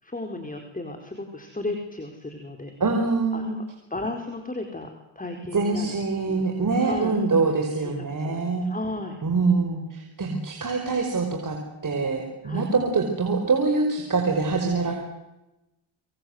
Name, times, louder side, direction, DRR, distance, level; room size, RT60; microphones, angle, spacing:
voice 1, 0.0-2.7 3.3-3.6 3.9-4.9 5.1-5.9 6.2-6.5 6.8-7.2 7.8-9.2 12.4-12.7, left 2 dB, 15° left, 4 dB, 4.7 m, -34 dB
voice 2, 2.8-3.6 5.5-8.7 9.2-11.6 11.8-14.9, right 4 dB, 40° right, 3 dB, 5.5 m, -24 dB
26.0 x 23.0 x 8.1 m, 0.97 s
cardioid pair, 70°, 49 cm